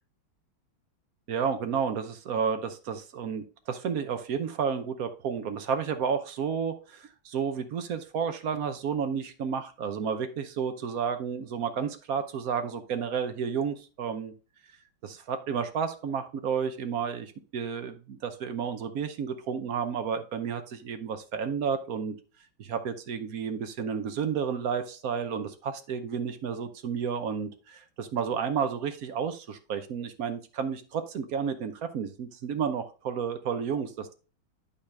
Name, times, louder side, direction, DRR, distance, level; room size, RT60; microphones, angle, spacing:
voice 1, 1.3-14.3 15.0-22.2 22.6-34.1, right 6 dB, 60° right, 8 dB, 1.0 m, -31 dB
8.8 x 5.7 x 3.4 m, 0.35 s
omnidirectional pair, 2.3 m